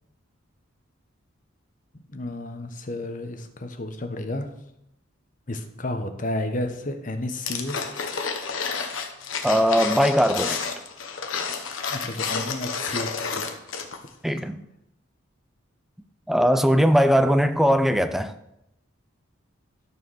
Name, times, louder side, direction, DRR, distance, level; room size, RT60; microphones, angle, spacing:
voice 1, 1.9-4.5 5.5-7.9 11.9-13.5, left 1 dB, 40° left, 7 dB, 1.0 m, -32 dB
sound 1, 7.5-14.1 14.4-14.5, left 5 dB, 75° left, 1.2 m, -30 dB
voice 2, 9.4-10.6 14.2-14.6 16.3-18.3, equal, ahead, 10 dB, 0.4 m, -20 dB
12.5 x 4.7 x 6.3 m, 0.83 s
head